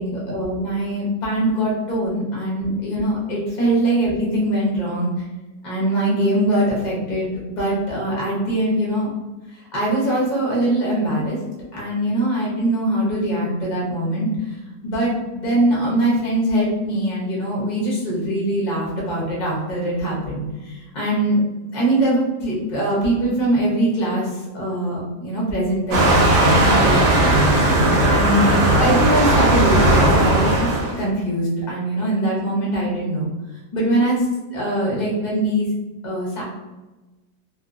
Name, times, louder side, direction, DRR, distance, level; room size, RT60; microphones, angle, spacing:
voice 1, 0.0-5.2 5.6-9.1 9.5-11.4 11.7-14.6 14.8-21.4 21.7-27.5 28.0-33.3 33.7-35.7 36.0-36.4, right 1 dB, 40° left, -5 dB, 0.7 m, -22 dB
Waves surf, 25.9-31.0, right 1 dB, 60° right, 1.0 m, -16 dB
2.8 x 2.7 x 2.4 m, 1.1 s
omnidirectional pair, 1.9 m